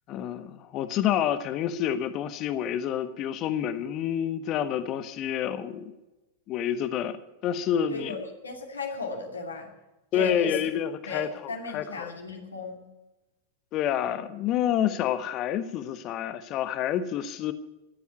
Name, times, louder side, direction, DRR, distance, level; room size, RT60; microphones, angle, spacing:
voice 1, 0.1-5.9 6.5-7.2 7.4-8.1 10.1-12.1 13.7-17.5, left 10 dB, 35° left, 1.0 m, -28 dB
voice 2, 7.9-9.7 10.1-10.6 11.1-12.8, left 4 dB, 75° left, 2.6 m, -36 dB
14.0 x 8.4 x 9.5 m
figure-of-eight pair, 90°, 0 cm